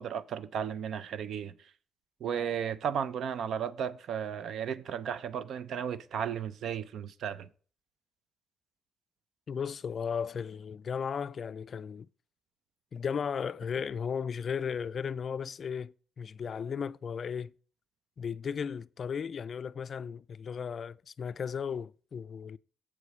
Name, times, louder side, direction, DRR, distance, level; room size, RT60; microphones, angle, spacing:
voice 1, 0.0-1.7 2.2-7.5, right 8 dB, 65° right, 0.5 m, -34 dB
voice 2, 9.5-12.1 12.9-17.5 18.2-22.6, left 7 dB, 50° left, 0.3 m, -35 dB
7.4 x 4.8 x 6.7 m
cardioid pair, 90°, 0 cm